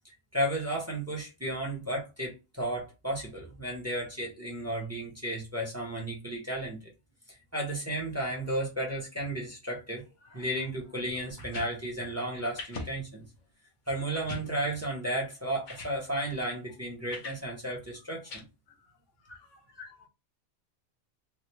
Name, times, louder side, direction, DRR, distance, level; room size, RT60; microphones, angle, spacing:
voice 1, 0.3-6.8 7.5-10.0 10.3-13.2 13.9-18.4 19.7-19.9, right 1 dB, 15° right, 0.9 m, -33 dB
sound 1, 11.3-11.7 12.6-12.9 13.4-13.5 14.1-14.5 15.3-15.4 15.7-15.9 17.1-17.4 18.3-18.4, left 3 dB, 45° left, 0.8 m, -40 dB
voice 2, 18.7-19.0 19.2-20.1, left 5 dB, 90° left, 1.0 m, -62 dB
3.3 x 2.5 x 3.0 m
omnidirectional pair, 1.3 m